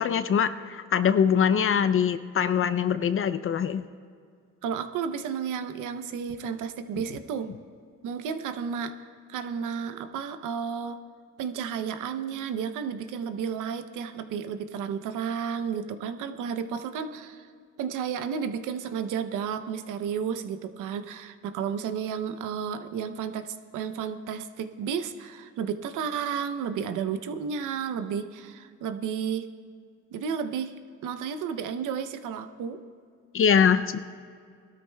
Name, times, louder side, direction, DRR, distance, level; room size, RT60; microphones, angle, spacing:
voice 1, 0.0-3.8 33.3-34.0, left 7 dB, 45° left, 11 dB, 0.5 m, -23 dB
voice 2, 4.6-7.5 8.0-9.0 9.3-11.0 11.4-17.5 17.8-29.5 30.1-30.7 31.0-32.8, right 7 dB, 85° right, 10 dB, 0.7 m, -32 dB
21.5 x 13.0 x 2.3 m, 2.2 s
cardioid pair, 90°, 30 cm